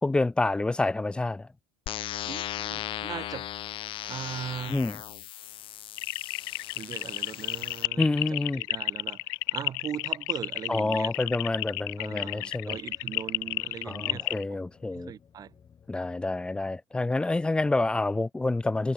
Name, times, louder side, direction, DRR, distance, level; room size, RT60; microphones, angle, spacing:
voice 1, 0.0-1.5 4.7-5.0 8.0-8.6 10.7-12.8 13.9-15.1 15.9-18.9, left 2 dB, 5° left, 0.6 m, -28 dB
sound 1, 1.9-7.9, left 13 dB, 45° left, 4.1 m, -37 dB
voice 2, 2.2-3.5 4.0-4.8 6.7-11.3 12.0-14.6 14.9-15.5, right 9 dB, 30° right, 1.6 m, -40 dB
sound 2, 6.0-14.4, left 26 dB, 75° left, 0.9 m, -31 dB
sound 3, 11.6-16.8, left 7 dB, 25° left, 7.5 m, -59 dB
supercardioid pair, 130°, 13 cm